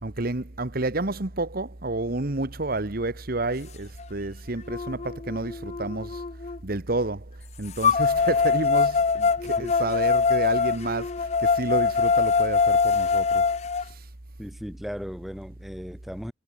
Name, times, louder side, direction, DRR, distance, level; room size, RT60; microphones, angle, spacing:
voice 1, 0.0-6.2 6.6-13.5 13.8-14.1, right 2 dB, 55° right, 1.5 m, -30 dB
sound 1, 4.0-4.1 4.7-6.6 7.8-13.8, left 5 dB, 40° left, 0.5 m, -23 dB
voice 2, 14.4-16.3, equal, ahead, 2.2 m, -37 dB
head